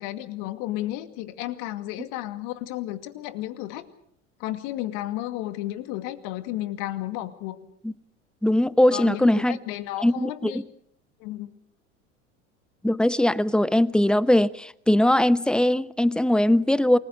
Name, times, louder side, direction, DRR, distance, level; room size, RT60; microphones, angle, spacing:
voice 1, 0.0-3.9 4.4-7.6 8.9-10.6 11.2-11.5, left 15 dB, 60° left, 2.3 m, -32 dB
voice 2, 8.4-9.6 10.0-10.5 12.8-17.0, left 1 dB, ahead, 0.9 m, -20 dB
29.0 x 21.0 x 6.6 m
hypercardioid pair, 80°, 36 cm